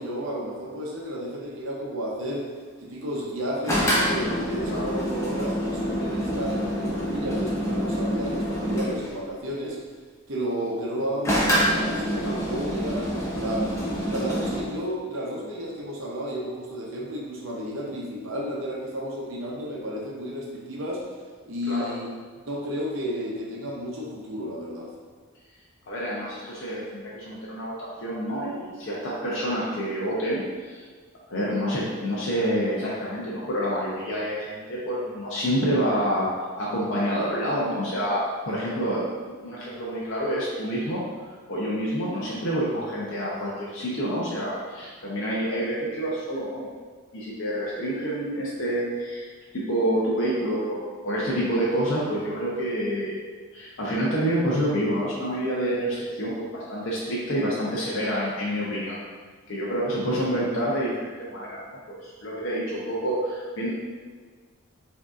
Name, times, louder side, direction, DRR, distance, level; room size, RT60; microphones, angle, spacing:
voice 1, 0.0-2.5 2.8-9.8 10.3-13.7 14.1-21.1 21.4-24.9, equal, 60° right, -2 dB, 0.7 m, -32 dB
sound 1, 3.7-9.1 11.2-14.6, equal, 15° left, 0.6 m, -26 dB
voice 2, 25.9-30.8 31.3-36.3 36.6-38.2 38.5-46.7 47.1-49.3 49.5-53.1 53.5-59.0 59.5-63.7, equal, 60° left, -7 dB, 0.6 m, -28 dB
4.8 x 2.7 x 2.4 m, 1.5 s
head